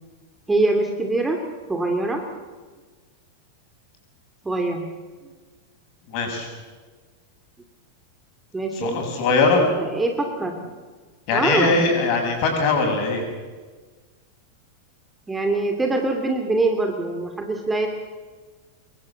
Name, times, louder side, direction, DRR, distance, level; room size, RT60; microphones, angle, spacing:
voice 1, 0.5-1.4 1.7-2.2 4.4-4.9 8.5-9.0 9.8-10.7 11.3-11.8 15.3-17.9, right 2 dB, 10° right, 4 dB, 2.6 m, -23 dB
voice 2, 6.1-6.5 8.7-9.6 11.3-13.2, left 3 dB, 45° left, 3 dB, 7.8 m, -21 dB
26.5 x 22.5 x 7.5 m, 1.4 s
figure-of-eight pair, 90°, 0 cm